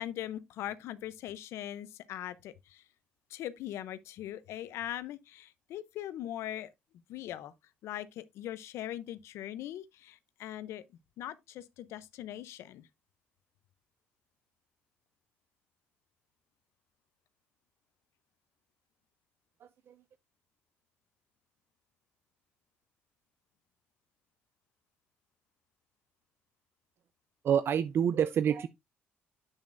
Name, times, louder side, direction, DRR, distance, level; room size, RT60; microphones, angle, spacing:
voice 1, 0.0-2.8 3.3-6.7 7.1-7.5 7.8-10.8 11.2-12.9, left 12 dB, 85° left, 0.6 m, -41 dB
voice 2, 19.6-20.0 27.4-28.7, right 8 dB, 60° right, 0.4 m, -28 dB
8.0 x 7.2 x 2.5 m
cardioid pair, 90°, 5 cm